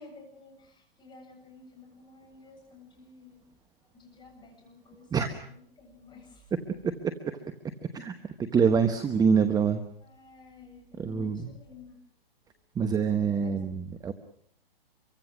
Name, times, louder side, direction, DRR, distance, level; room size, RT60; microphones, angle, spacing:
voice 1, 0.0-3.4 3.9-6.5 8.9-9.0 10.0-12.0 12.4-12.5 13.4-13.6, left 4 dB, 15° left, 3 dB, 7.6 m, -52 dB
voice 2, 8.4-9.8 11.0-11.5 12.7-14.1, right 6 dB, 15° right, 9 dB, 1.1 m, -25 dB
25.5 x 24.0 x 6.2 m, 0.65 s
hypercardioid pair, 125°, 29 cm